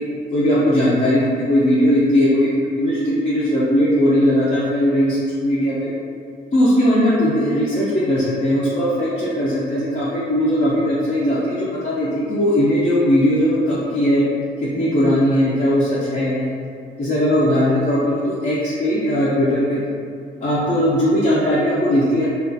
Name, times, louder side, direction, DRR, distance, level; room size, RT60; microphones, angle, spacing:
voice 1, 0.0-5.9 6.5-14.2 14.6-16.5 17.0-19.8 20.4-22.3, equal, 35° left, -9 dB, 0.5 m, -18 dB
2.4 x 2.3 x 2.5 m, 2.3 s
cardioid pair, 95°, 21 cm